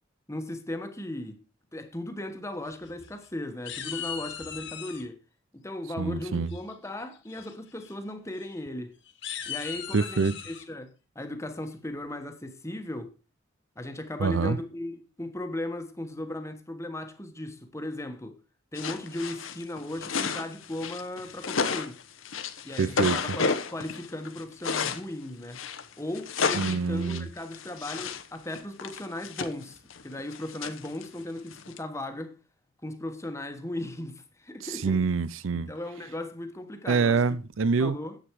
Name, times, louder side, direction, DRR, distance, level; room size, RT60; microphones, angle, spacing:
voice 1, 0.3-1.4 1.7-5.2 5.5-8.9 9.5-13.1 13.8-18.4 18.7-22.0 22.6-25.6 26.0-29.8 30.0-32.3 32.8-35.0 35.5-37.2 37.8-38.2, left 1 dB, 15° left, 1.2 m, -37 dB
sound 1, 2.7-3.3 3.6-5.0 6.5-6.9 7.3-7.5 7.8-7.9 8.3-8.5 9.1-10.6, left 9 dB, 65° left, 1.7 m, -38 dB
voice 2, 6.0-6.5 9.9-10.3 14.2-14.6 22.8-23.2 26.5-27.3 34.6-35.7 36.9-38.0, right 4 dB, 85° right, 0.6 m, -26 dB
sound 2, 18.8-25.0 25.5-28.3 28.5-31.8, left 5 dB, 85° left, 1.0 m, -32 dB
10.0 x 8.0 x 4.7 m
head